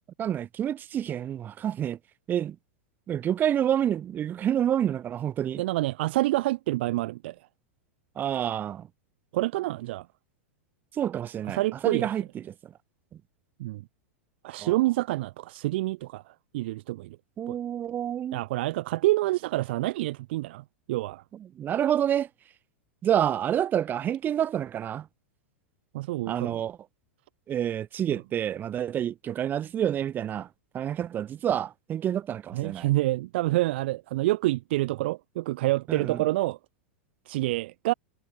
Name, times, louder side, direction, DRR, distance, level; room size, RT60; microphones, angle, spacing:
voice 1, 0.2-2.0 2.3-2.6 3.1-5.6 8.2-8.9 10.9-12.4 14.6-14.7 17.4-18.4 21.6-22.3 23.0-25.1 26.3-26.8 27.5-30.5 30.7-32.9 35.9-36.2, right 10 dB, 30° right, 1.7 m, -28 dB
voice 2, 5.6-7.4 9.3-10.1 11.5-12.1 13.6-13.8 14.4-17.2 17.5-17.6 18.3-21.2 25.9-26.6 28.1-28.2 32.5-36.6 37.3-37.9, right 18 dB, 60° right, 2.0 m, -27 dB
hypercardioid pair, 105°, 7 cm